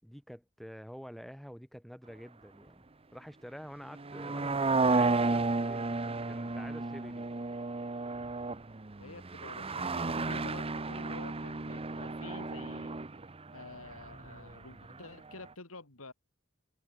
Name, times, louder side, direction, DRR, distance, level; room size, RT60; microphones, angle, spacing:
voice 1, 0.0-2.8 3.1-7.3, equal, ahead, 6.4 m, -48 dB
sound 1, 3.9-15.0 15.3-15.4, right 3 dB, 25° right, 0.9 m, -33 dB
voice 2, 9.0-13.0 13.5-16.1, left 3 dB, 75° left, 3.0 m, -49 dB
head